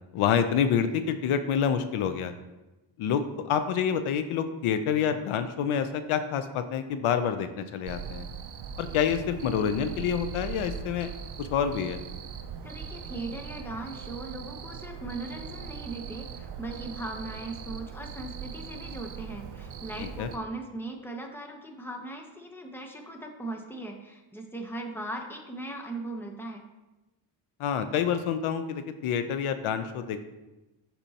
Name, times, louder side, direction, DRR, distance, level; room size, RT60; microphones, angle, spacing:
voice 1, 0.1-2.3 3.0-3.2 3.5-8.3 8.8-11.1 11.4-12.0 20.0-20.3 27.6-30.2, left 8 dB, 85° left, 10 dB, 0.7 m, -27 dB
Cricket, 7.9-20.4, right 7 dB, 55° right, 0.6 m, -40 dB
voice 2, 12.6-26.6, right 2 dB, 5° left, 3 dB, 0.8 m, -39 dB
12.0 x 4.3 x 2.8 m, 1.0 s
cardioid pair, 130°, 48 cm